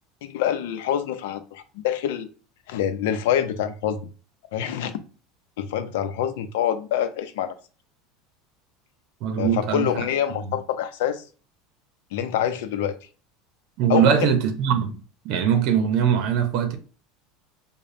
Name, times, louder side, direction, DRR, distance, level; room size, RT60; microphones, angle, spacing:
voice 1, 0.2-2.3 2.7-4.1 4.5-5.0 5.6-7.5 9.4-11.2 12.1-12.9 13.9-14.3, left 10 dB, 80° left, 0.6 m, -26 dB
voice 2, 9.2-9.9 10.4-10.5 13.8-15.0 15.2-16.8, right 8 dB, 55° right, 0.7 m, -21 dB
5.0 x 2.2 x 2.7 m
supercardioid pair, 150°, 0 cm